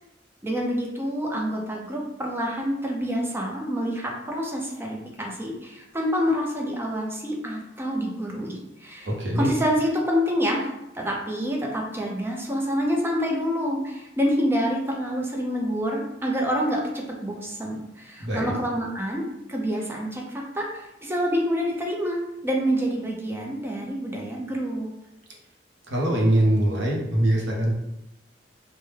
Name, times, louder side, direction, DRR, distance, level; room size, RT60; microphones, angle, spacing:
voice 1, 0.4-9.1 9.4-19.2 19.5-24.9, equal, 15° right, -1 dB, 0.5 m, -27 dB
voice 2, 9.2-9.5 18.2-18.6 25.9-27.7, right 1 dB, 75° right, -1 dB, 0.8 m, -22 dB
3.4 x 2.1 x 3.2 m, 0.87 s
head